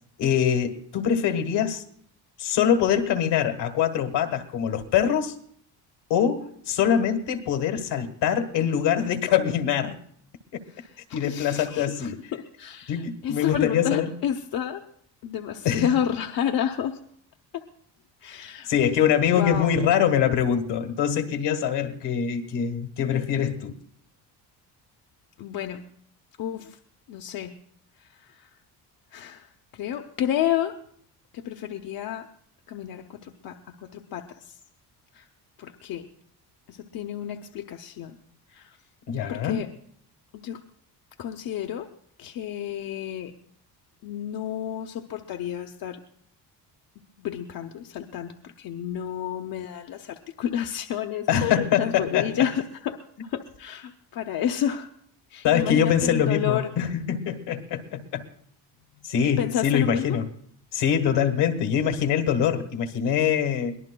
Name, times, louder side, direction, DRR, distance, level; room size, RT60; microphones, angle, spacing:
voice 1, 0.2-1.8 2.4-5.3 6.1-9.9 11.1-12.2 12.9-14.1 15.6-15.9 18.6-23.7 39.1-39.6 51.3-52.3 55.4-58.2 59.0-60.2 60.7-63.8, left 8 dB, 75° left, 7 dB, 1.5 m, -24 dB
voice 2, 10.7-14.8 15.2-17.0 17.5-17.6 18.2-18.7 19.3-19.8 25.4-25.9 26.4-26.8 27.1-27.6 28.0-28.5 29.1-30.8 31.3-32.3 32.7-34.6 35.1-35.3 35.6-36.1 36.7-38.1 38.5-38.8 39.3-39.7 40.3-40.6 41.2-41.9 42.2-43.3 44.0-46.0 47.2-54.9 55.3-56.7 58.9-59.1 59.4-60.2, left 10 dB, 55° left, 4 dB, 0.8 m, -31 dB
22.5 x 18.5 x 2.2 m, 0.64 s
cardioid pair, 140°, 42 cm